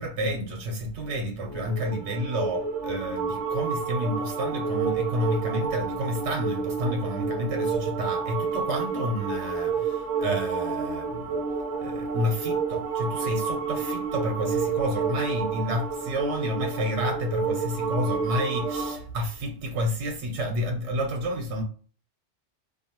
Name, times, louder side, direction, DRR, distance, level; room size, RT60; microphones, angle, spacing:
voice 1, 0.0-11.4 11.8-21.6, equal, 85° right, 0.9 m, -30 dB
sound 1, 1.4-19.0, right 5 dB, 55° right, 0.8 m, -30 dB
2.6 x 2.2 x 2.8 m
omnidirectional pair, 1.1 m